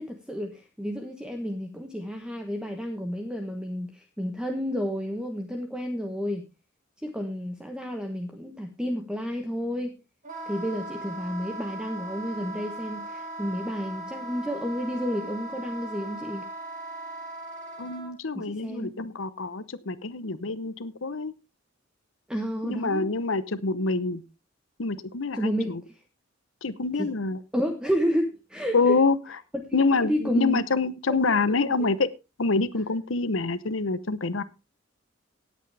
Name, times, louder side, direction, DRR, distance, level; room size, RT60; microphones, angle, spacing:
voice 1, 0.0-6.5 7.0-10.0 10.5-16.5 18.3-18.9 22.3-23.1 25.3-26.0 26.9-27.1 27.5-29.0 29.7-30.7 31.1-31.9, equal, 5° right, 4 dB, 1.1 m, -31 dB
Wind instrument woodwind instrument, 10.2-18.1, right 2 dB, 40° right, 3.3 m, -38 dB
voice 2, 17.8-21.3 22.6-24.2 24.8-25.8 26.6-27.4 28.7-29.2 29.7-32.1 32.4-34.4, left 3 dB, 80° left, 15 dB, 0.9 m, -26 dB
18.0 x 8.3 x 3.4 m, 0.28 s
head